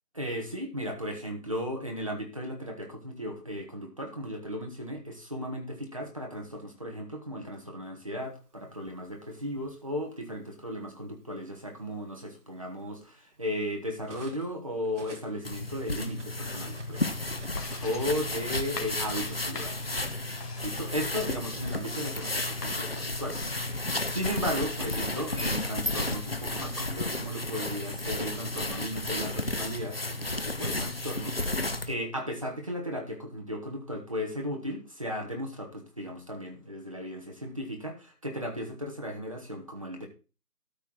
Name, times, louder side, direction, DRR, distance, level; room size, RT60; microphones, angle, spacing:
voice 1, 0.1-17.2 17.8-19.8 20.6-23.4 24.1-40.1, equal, 20° right, 2 dB, 1.1 m, -35 dB
Cutlery silverware, 8.4-9.7 10.7-10.9 11.3-14.5 14.8-18.0, right 3 dB, 45° right, 1.6 m, -52 dB
sound 1, 15.4-31.9, left 2 dB, 40° left, 0.7 m, -33 dB
sound 2, 17.6-24.4, left 3 dB, 75° left, 2.3 m, -46 dB
12.5 x 4.4 x 6.1 m, 0.33 s
figure-of-eight pair, 170°, 48 cm